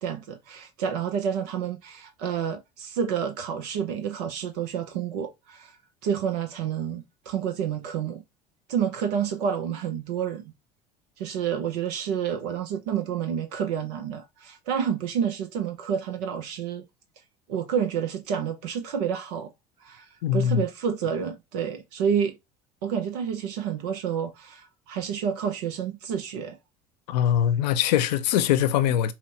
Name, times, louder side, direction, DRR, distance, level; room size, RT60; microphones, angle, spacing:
voice 1, 0.0-5.7 6.0-8.2 8.7-10.5 11.2-16.8 17.5-19.5 19.8-22.4 22.8-26.6, right 8 dB, 75° right, 0.7 m, -29 dB
voice 2, 20.2-20.6 27.1-29.1, left 10 dB, 80° left, 0.5 m, -22 dB
5.7 x 2.1 x 2.8 m
hypercardioid pair, 70°, 21 cm